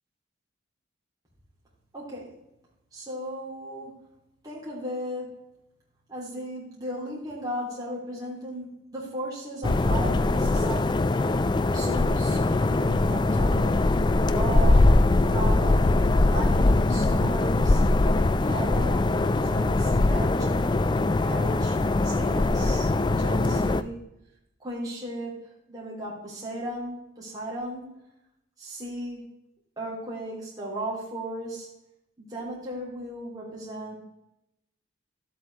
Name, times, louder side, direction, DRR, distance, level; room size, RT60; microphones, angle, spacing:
voice 1, 1.9-2.3 2.9-4.0 4.4-5.3 6.1-11.1 11.7-14.9 15.3-16.0 16.2-17.8 18.4-20.8 21.2-21.8 22.0-24.0 24.6-25.3 25.7-27.9 28.6-29.2 29.8-31.7 32.2-33.9, right 1 dB, 20° right, -6 dB, 3.3 m, -36 dB
sound 1, 9.6-23.8, left 2 dB, 20° left, 0.3 m, -22 dB
12.5 x 8.1 x 3.5 m, 0.85 s
head